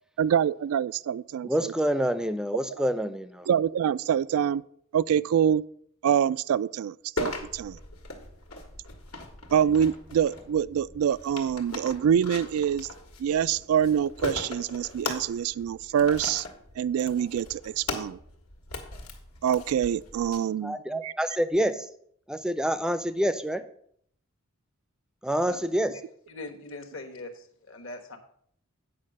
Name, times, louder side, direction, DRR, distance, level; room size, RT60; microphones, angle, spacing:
voice 1, 0.2-1.7 3.5-4.6 4.9-5.7 6.0-7.8 9.5-12.9 13.2-16.4 16.8-18.2 19.4-20.8 21.0-21.1, right 8 dB, 85° right, 0.3 m, -25 dB
voice 2, 1.4-3.5 20.6-21.9 22.3-23.6 25.2-26.0, equal, 5° right, 0.5 m, -27 dB
sound 1, 7.2-20.4, left 2 dB, 85° left, 1.7 m, -39 dB
voice 3, 26.3-28.2, left 2 dB, 65° left, 1.3 m, -41 dB
8.6 x 5.5 x 6.4 m
head